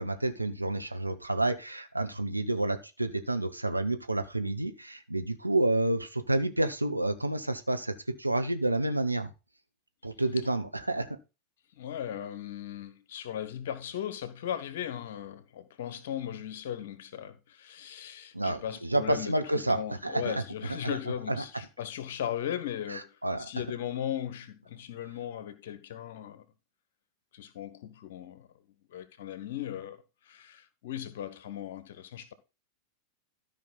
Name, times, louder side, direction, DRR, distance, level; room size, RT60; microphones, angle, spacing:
voice 1, 0.0-9.3 10.0-11.2 18.3-20.4 20.8-21.0 21.3-21.4 22.9-23.5, right 2 dB, 85° right, 1.0 m, -29 dB
voice 2, 11.7-26.4 27.3-28.5 28.9-32.3, left 10 dB, 55° left, 1.4 m, -37 dB
13.0 x 5.4 x 4.1 m
figure-of-eight pair, 90°, 0 cm